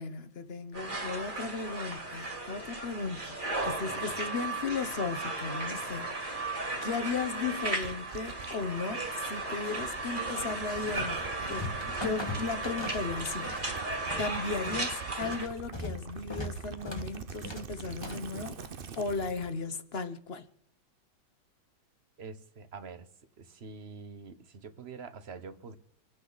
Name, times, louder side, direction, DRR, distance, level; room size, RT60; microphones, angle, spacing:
voice 1, 0.0-6.5 6.8-13.8 14.2-20.4, left 4 dB, 40° left, 1.0 m, -36 dB
sound 1, 0.7-15.5, right 3 dB, 25° right, 2.5 m, -36 dB
voice 2, 3.6-4.2 22.2-23.1 23.4-25.8, right 5 dB, 40° right, 1.1 m, -45 dB
Gurgling / Liquid, 7.0-19.6, right 6 dB, 90° right, 0.4 m, -45 dB
sound 2, 10.2-11.2 11.4-13.7 13.9-18.3, left 2 dB, 15° left, 1.5 m, -40 dB
27.0 x 9.3 x 4.0 m
omnidirectional pair, 2.1 m